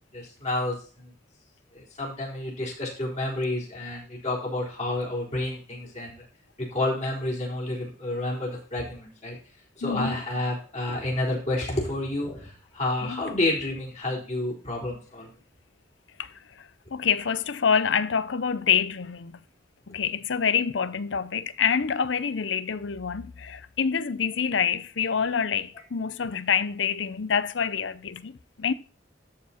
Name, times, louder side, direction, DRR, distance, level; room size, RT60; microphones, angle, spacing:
voice 1, 0.1-1.1 1.7-6.2 6.6-9.4 9.8-15.3, left 1 dB, 35° left, 4.1 m, -30 dB
voice 2, 9.8-10.1 13.0-13.2 16.2-16.3 16.9-19.3 19.9-28.7, left 7 dB, 75° left, 0.6 m, -26 dB
13.5 x 4.8 x 4.3 m
head